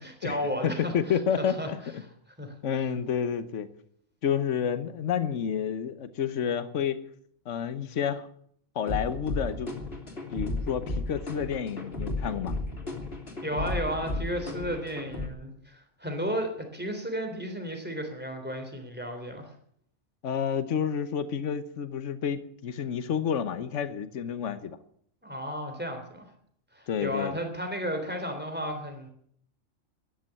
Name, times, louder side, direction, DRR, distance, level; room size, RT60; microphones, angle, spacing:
voice 1, 0.0-1.7 2.3-2.5 13.4-19.5 25.2-26.2 26.7-29.1, equal, 5° right, 5 dB, 3.3 m, -33 dB
voice 2, 0.6-2.0 2.6-3.7 4.2-7.0 7.5-8.3 8.7-9.7 10.3-12.6 20.2-24.8 26.9-27.3, left 8 dB, 65° left, 12 dB, 1.4 m, -29 dB
sound 1, 8.9-15.3, left 2 dB, 45° left, 3.1 m, -34 dB
13.5 x 10.5 x 9.9 m, 0.66 s
omnidirectional pair, 1.4 m